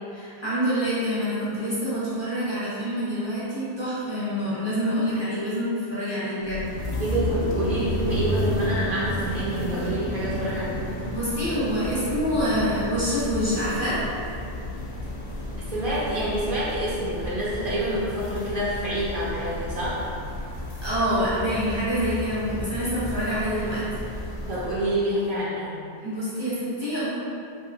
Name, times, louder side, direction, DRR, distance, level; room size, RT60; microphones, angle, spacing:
voice 1, 0.1-6.7 11.1-14.0 20.8-23.8 26.0-27.1, equal, 30° left, -12 dB, 0.9 m, -26 dB
sound 1, 6.4-25.0, left 1 dB, 55° left, 0.7 m, -32 dB
voice 2, 7.0-10.8 15.7-20.0 24.5-25.7, right 1 dB, 55° right, -8 dB, 0.9 m, -27 dB
3.1 x 2.8 x 2.6 m, 2.6 s
omnidirectional pair, 1.1 m